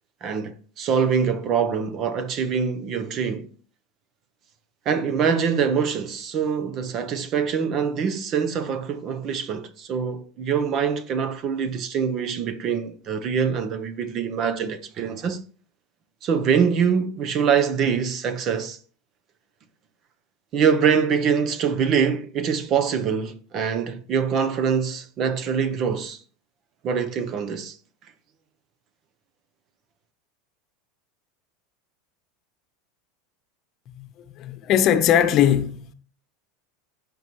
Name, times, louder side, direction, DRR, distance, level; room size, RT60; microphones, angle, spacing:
voice 1, 0.2-3.5 4.9-15.4 16.2-18.8 20.5-26.2 26.8-27.8, right 7 dB, 35° right, 0.8 m, -24 dB
voice 2, 34.4-35.9, left 9 dB, 35° left, 1.0 m, -20 dB
16.0 x 5.3 x 3.1 m
supercardioid pair, 155°, 0 cm